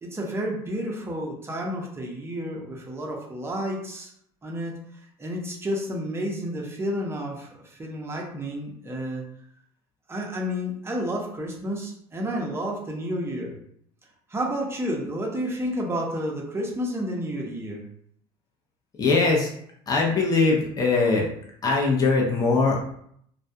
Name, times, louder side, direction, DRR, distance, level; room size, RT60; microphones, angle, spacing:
voice 1, 0.0-4.1 4.4-4.8 5.2-9.2 10.1-13.5 14.3-17.8, equal, 20° right, -1 dB, 0.6 m, -30 dB
voice 2, 19.0-19.5 19.9-21.3 21.6-22.9, left 3 dB, 30° left, -1 dB, 0.6 m, -21 dB
2.2 x 2.2 x 2.7 m, 0.67 s
supercardioid pair, 105°, 13 cm